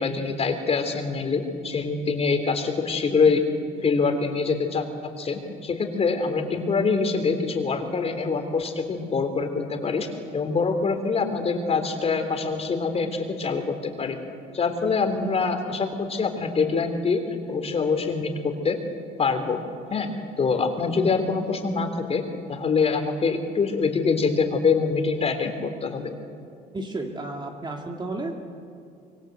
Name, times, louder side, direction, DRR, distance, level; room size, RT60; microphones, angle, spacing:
voice 1, 0.0-3.4 3.8-4.9 5.2-10.1 10.3-14.2 14.5-17.2 17.5-18.8 19.2-19.6 19.9-20.1 20.4-22.2 22.5-26.1, left 4 dB, 35° left, 6 dB, 3.4 m, -24 dB
voice 2, 26.7-28.3, right 2 dB, 25° right, 2 dB, 2.4 m, -32 dB
25.0 x 24.0 x 8.0 m, 2.4 s
cardioid pair, 110°, 17 cm